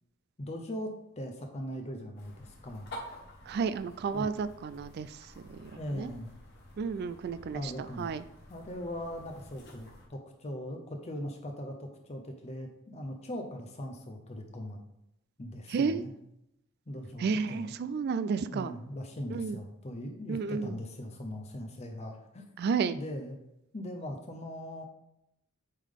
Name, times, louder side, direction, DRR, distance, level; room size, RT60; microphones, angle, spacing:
voice 1, 0.4-2.9 4.1-4.3 5.7-6.3 7.5-8.1 8.5-14.8 15.4-16.1 16.9-17.7 18.4-22.5 22.9-23.4 23.7-24.8, equal, 30° left, 4 dB, 0.7 m, -40 dB
sound 1, 2.1-10.1, left 1 dB, 55° left, 1.5 m, -50 dB
voice 2, 3.5-6.1 6.8-7.7 8.0-8.2 15.7-16.0 17.2-18.7 19.3-19.6 20.3-20.8 22.6-23.0, right 5 dB, 50° right, 13 dB, 0.3 m, -32 dB
8.2 x 3.7 x 3.6 m, 0.81 s
head